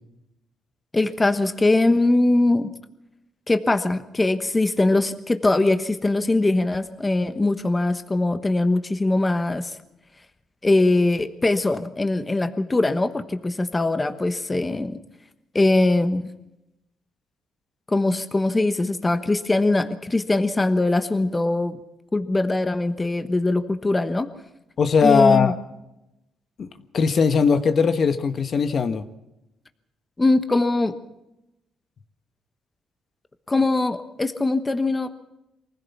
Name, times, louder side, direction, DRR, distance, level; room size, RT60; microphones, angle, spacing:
voice 1, 0.9-2.7 3.5-9.8 10.6-15.0 15.5-16.3 17.9-21.8 22.1-24.3 25.0-25.5 30.2-30.9 33.5-35.1, left 2 dB, 20° left, 9 dB, 1.2 m, -21 dB
voice 2, 24.8-25.6 26.6-26.7 26.9-29.0, left 5 dB, 50° left, 9 dB, 1.3 m, -19 dB
23.5 x 15.5 x 7.2 m, 0.91 s
cardioid pair, 90°, 0 cm